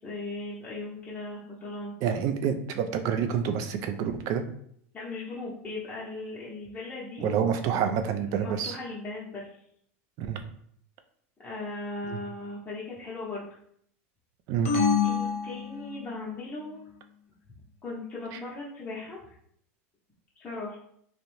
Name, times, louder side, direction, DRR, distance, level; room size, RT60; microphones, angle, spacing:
voice 1, 0.0-1.9 4.9-7.3 8.4-9.6 11.4-13.6 15.0-16.8 17.8-19.2 20.4-20.8, left 2 dB, 20° left, -7 dB, 0.7 m, -38 dB
voice 2, 2.0-4.4 7.2-8.8 10.2-10.4 12.1-12.2 14.5-14.7 18.3-18.4, right 7 dB, 50° right, 7 dB, 0.4 m, -28 dB
sound 1, 14.6-16.3, left 6 dB, 80° left, 0.6 m, -27 dB
2.6 x 2.0 x 3.0 m, 0.67 s
supercardioid pair, 110°, 7 cm